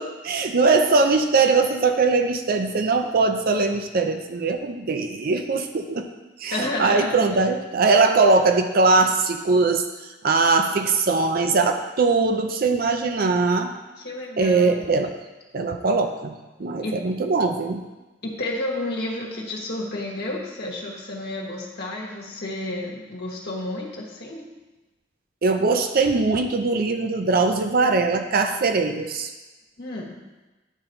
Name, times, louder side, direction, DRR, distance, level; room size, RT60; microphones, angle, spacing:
voice 1, 0.0-6.1 6.4-13.7 14.4-15.1 15.5-17.8 25.4-29.3, right 3 dB, 55° right, 6 dB, 0.5 m, -21 dB
voice 2, 6.5-7.3 14.0-14.9 16.8-17.0 18.2-24.4 29.8-30.1, left 1 dB, 60° left, -3 dB, 1.5 m, -31 dB
10.0 x 4.0 x 4.4 m, 1.1 s
head